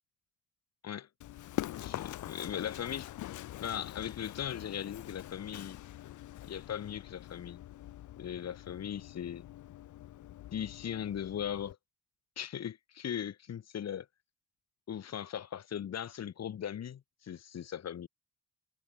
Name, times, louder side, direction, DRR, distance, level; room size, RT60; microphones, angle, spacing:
Run, 1.2-11.7, left 14 dB, 75° left, 1.6 m, -44 dB
voice 1, 1.8-3.1 3.6-5.8 6.4-7.6 8.2-9.5 10.5-11.8 12.4-14.1 14.9-18.1, left 9 dB, 60° left, 3.6 m, -39 dB
cardioid pair, 90°, 30 cm